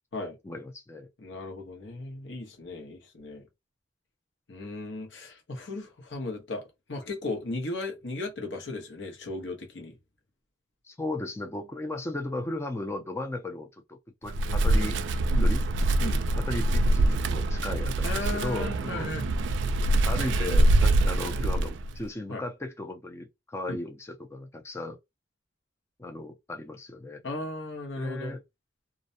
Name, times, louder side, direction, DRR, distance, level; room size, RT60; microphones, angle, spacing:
voice 1, 0.4-1.1 10.8-15.0 15.4-15.6 16.5-19.1 20.0-25.0 26.0-27.2 28.0-28.4, left 2 dB, 15° left, 0.4 m, -36 dB
voice 2, 1.2-3.5 4.5-6.6 6.9-10.0 15.3-15.6 16.0-16.2 18.0-19.2 22.3-22.4 23.7-23.8 27.2-28.4, left 2 dB, 70° left, 1.0 m, -36 dB
Wind, 14.3-22.0, right 1 dB, 70° right, 0.3 m, -24 dB
2.5 x 2.1 x 2.6 m
head